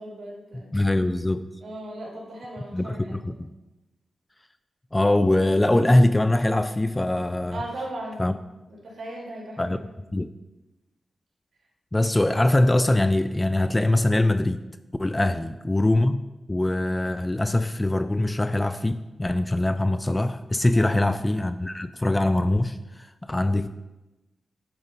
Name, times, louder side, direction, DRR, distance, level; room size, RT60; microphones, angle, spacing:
voice 1, 0.0-0.7 1.6-3.2 7.5-8.2 8.7-9.8 15.2-15.4 20.7-21.2, right 1 dB, 70° right, -3 dB, 2.6 m, -37 dB
voice 2, 0.7-1.5 2.7-3.5 4.9-7.6 8.2-8.3 9.6-9.8 10.1-10.3 11.9-14.6 15.0-16.2 16.5-23.7, left 1 dB, 20° left, 11 dB, 0.4 m, -22 dB
10.5 x 4.0 x 5.3 m, 1.0 s
cardioid pair, 70°, 0 cm